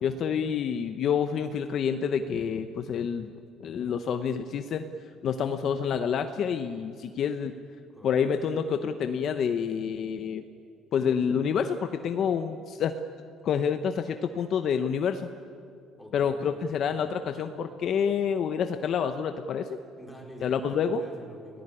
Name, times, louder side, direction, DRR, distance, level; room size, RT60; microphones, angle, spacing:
voice 1, 0.0-3.3 3.6-4.8 5.2-7.5 8.0-10.4 10.9-12.9 13.4-15.3 16.1-19.8 20.4-21.0, left 7 dB, 45° left, 8 dB, 0.9 m, -28 dB
voice 2, 7.9-8.2 16.0-16.8 20.0-21.6, right 1 dB, ahead, -1 dB, 4.5 m, -46 dB
29.5 x 18.5 x 9.9 m, 2.5 s
cardioid pair, 165°, 0 cm